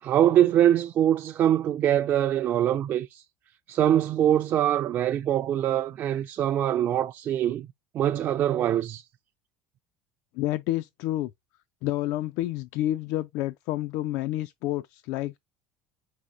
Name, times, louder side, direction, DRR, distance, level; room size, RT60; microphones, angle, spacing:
voice 1, 0.0-3.2 3.7-7.7 7.9-9.0, right 11 dB, 45° right, 0.4 m, -23 dB
voice 2, 10.3-11.3 11.8-15.4, left 15 dB, 70° left, 0.4 m, -29 dB
5.0 x 4.0 x 2.6 m
cardioid pair, 130°, 5 cm